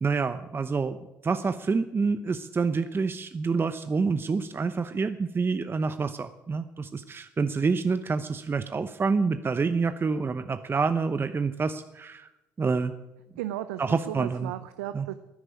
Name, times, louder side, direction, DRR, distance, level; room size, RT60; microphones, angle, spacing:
voice 1, 0.0-1.0 1.2-12.3 12.6-12.9 13.8-14.5 14.9-15.1, right 4 dB, 30° right, 10 dB, 0.8 m, -27 dB
voice 2, 13.4-15.1, right 13 dB, 85° right, 11 dB, 0.6 m, -35 dB
12.5 x 9.9 x 8.5 m, 0.96 s
hypercardioid pair, 60°, 8 cm